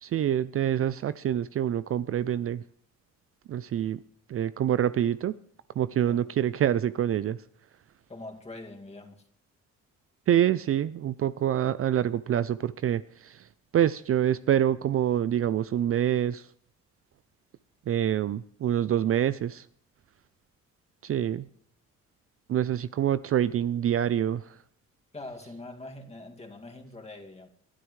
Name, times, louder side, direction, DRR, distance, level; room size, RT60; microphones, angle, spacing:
voice 1, 0.0-2.6 3.5-4.0 4.3-5.3 5.8-7.4 10.3-13.5 13.7-16.5 17.9-19.7 21.0-21.5 22.5-24.6, right 10 dB, 50° right, 0.5 m, -26 dB
voice 2, 8.1-9.2 25.1-27.5, left 2 dB, 20° left, 2.2 m, -43 dB
21.5 x 12.0 x 3.2 m
cardioid pair, 90°, 30 cm